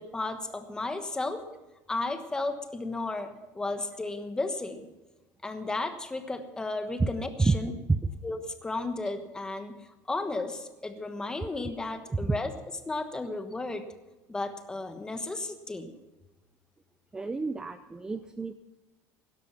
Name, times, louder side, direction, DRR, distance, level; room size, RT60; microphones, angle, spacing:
voice 1, 0.0-1.4 1.9-4.9 5.4-7.7 8.2-9.7 10.1-12.5 12.9-13.9 14.3-15.9, left 2 dB, 10° left, 7 dB, 1.2 m, -34 dB
voice 2, 17.1-18.5, right 3 dB, 10° right, 11 dB, 0.5 m, -28 dB
16.5 x 12.5 x 5.8 m, 1.1 s
cardioid pair, 160°, 7 cm